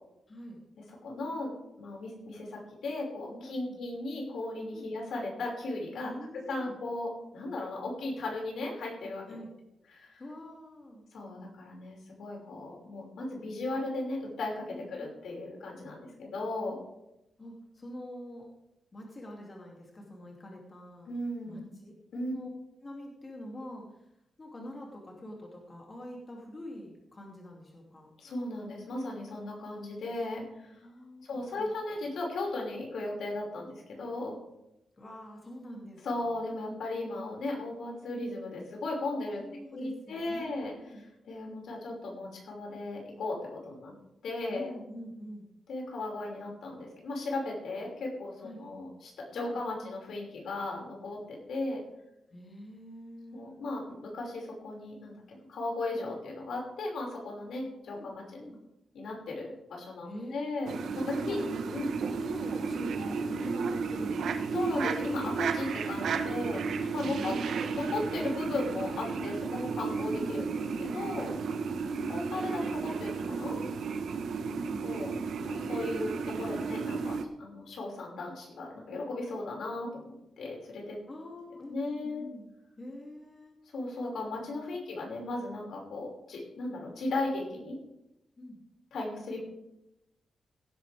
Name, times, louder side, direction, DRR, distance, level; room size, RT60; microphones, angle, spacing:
voice 1, 0.3-0.6 3.3-3.8 4.7-4.9 6.0-6.8 9.3-9.5 10.2-11.0 14.7-15.1 17.4-18.5 18.9-21.1 21.4-21.9 22.3-22.5 22.8-24.1 24.4-28.1 30.8-31.7 35.0-36.4 39.3-41.0 44.5-45.5 48.4-48.6 49.4-49.9 52.3-53.4 57.9-58.1 58.4-58.6 60.1-60.7 61.1-61.9 62.2-64.5 65.7-65.9 67.0-67.9 69.2-69.3 71.3-72.0 74.3-74.9 81.1-82.4 82.8-83.6 84.7-85.3 88.4-88.6, left 1 dB, 25° left, -1 dB, 2.7 m, -45 dB
voice 2, 1.0-6.1 6.5-7.1 7.3-9.2 9.9-10.2 11.1-16.8 21.1-21.7 22.1-22.3 28.2-30.8 31.2-34.4 36.0-39.4 39.7-40.7 41.2-43.4 43.6-43.9 44.2-44.7 45.7-51.8 53.3-58.4 58.9-61.4 61.7-61.9 64.5-66.6 66.9-67.3 67.7-71.3 72.1-73.6 74.8-75.2 75.5-81.0 81.7-82.2 83.7-87.8 88.9-89.4, left 2 dB, 80° left, -1 dB, 5.7 m, -36 dB
sound 1, 60.7-77.3, right 5 dB, 85° right, 1.2 m, -33 dB
17.0 x 11.5 x 3.5 m, 0.87 s
wide cardioid pair, 150°, 0 cm